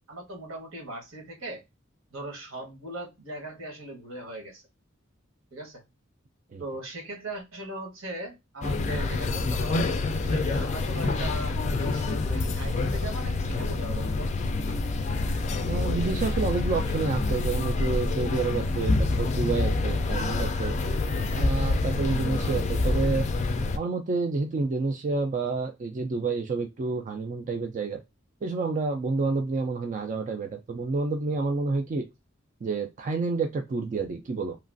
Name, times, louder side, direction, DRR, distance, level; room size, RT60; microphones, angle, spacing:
voice 1, 0.1-1.6 2.1-4.6 5.5-5.8 6.6-9.8 10.2-14.3, right 1 dB, 75° right, 1.2 m, -39 dB
sound 1, 8.6-23.8, left 3 dB, 35° left, 0.3 m, -27 dB
voice 2, 15.6-20.7 21.3-23.3 23.7-28.0 28.4-32.1 32.6-34.6, right 3 dB, 40° right, 0.3 m, -29 dB
3.0 x 2.4 x 2.5 m
head